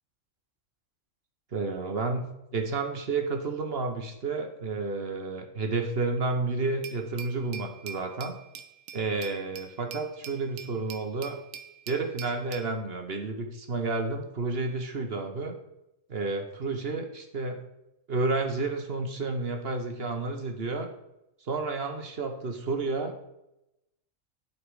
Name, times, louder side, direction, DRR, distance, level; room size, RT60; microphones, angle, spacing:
voice 1, 1.5-8.3 8.9-11.4 11.9-15.6 16.1-17.6 18.1-20.9 21.5-23.1, right 3 dB, 50° right, 4 dB, 1.2 m, -31 dB
Glass, 6.8-12.7, right 7 dB, 75° right, 1.0 m, -44 dB
11.5 x 4.1 x 4.8 m, 0.88 s
omnidirectional pair, 1.4 m